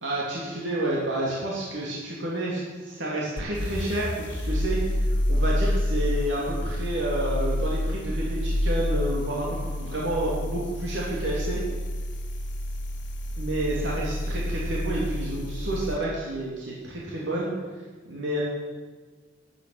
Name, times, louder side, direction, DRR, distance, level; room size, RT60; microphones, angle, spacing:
voice 1, 0.0-5.0 5.3-11.6 13.4-17.5 18.1-18.4, right 1 dB, 75° right, -5 dB, 2.9 m, -30 dB
sound 1, 3.4-16.0, left 1 dB, 70° left, 1.9 m, -28 dB
13.5 x 8.3 x 9.1 m, 1.4 s
head